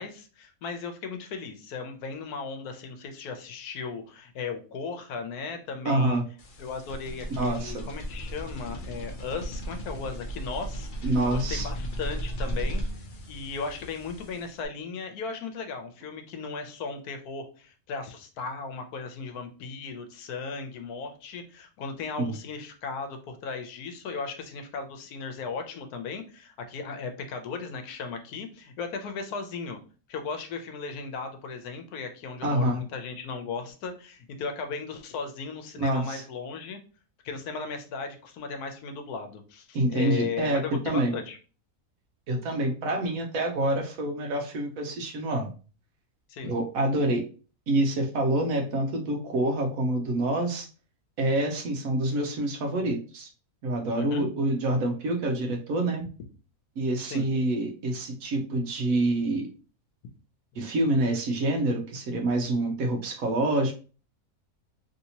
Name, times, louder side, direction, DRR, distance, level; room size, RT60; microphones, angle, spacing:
voice 1, 0.0-6.2 6.6-12.8 13.3-29.8 30.1-36.8 37.2-41.4 46.3-46.5 54.0-54.3 57.0-57.3, left 5 dB, 80° left, 6 dB, 1.2 m, -36 dB
voice 2, 5.8-6.2 7.4-7.8 11.0-11.7 22.2-22.3 32.4-32.8 35.8-36.2 39.7-41.1 42.3-45.5 46.4-47.2 47.7-50.7 51.2-53.3 53.6-56.0 56.8-59.5 60.6-63.7, right 1 dB, 70° right, 2 dB, 1.1 m, -27 dB
sound 1, 6.4-14.7, right 1 dB, 60° left, 0.5 m, -35 dB
3.2 x 2.8 x 2.8 m, 0.36 s
omnidirectional pair, 1.6 m